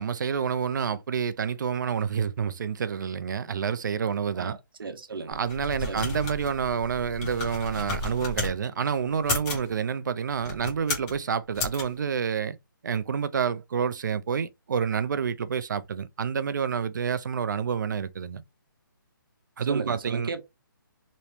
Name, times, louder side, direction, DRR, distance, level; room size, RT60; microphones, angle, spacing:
voice 1, 0.0-4.6 5.3-12.6 12.8-18.4 19.6-20.3, right 7 dB, 60° right, 0.5 m, -28 dB
voice 2, 4.3-5.4 5.9-6.0 19.7-20.4, right 4 dB, 80° right, 0.8 m, -35 dB
sound 1, 5.3-8.5 9.1-9.7 10.4-11.1 11.5-11.8, left 2 dB, 20° left, 1.0 m, -33 dB
3.0 x 2.7 x 3.2 m
hypercardioid pair, 165°, 11 cm